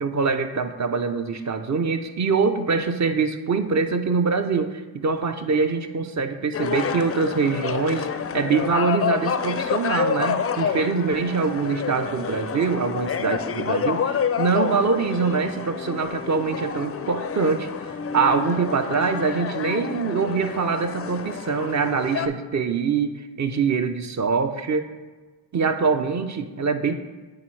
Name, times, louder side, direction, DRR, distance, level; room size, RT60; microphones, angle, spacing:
voice 1, 0.0-8.1 8.3-24.9 25.5-26.9, right 5 dB, 40° right, 7 dB, 0.6 m, -24 dB
sound 1, 6.5-22.3, left 7 dB, 30° left, 0.4 m, -28 dB
8.7 x 3.5 x 3.2 m, 1.3 s
supercardioid pair, 50°, 47 cm